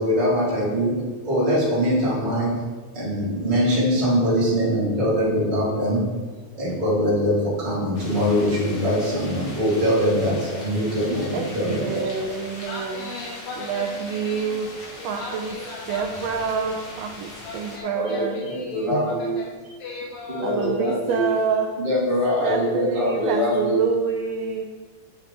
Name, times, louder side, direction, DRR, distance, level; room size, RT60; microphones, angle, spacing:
voice 1, 0.0-2.6 2.9-6.1 6.5-12.3 17.9-19.4 20.3-21.3 21.8-23.9, equal, 15° right, -9 dB, 2.7 m, -23 dB
sound 1, 7.9-17.8, left 1 dB, 45° left, 1.7 m, -40 dB
voice 2, 11.3-13.1 13.7-14.7 15.0-15.5 15.9-18.4 18.9-19.0 20.4-21.7 22.4-24.6, right 5 dB, 90° right, 3 dB, 1.4 m, -27 dB
voice 3, 12.4-14.6 15.0-16.5 17.4-21.4, left 3 dB, 65° left, -3 dB, 1.6 m, -38 dB
8.3 x 7.8 x 3.4 m, 1.4 s
omnidirectional pair, 3.6 m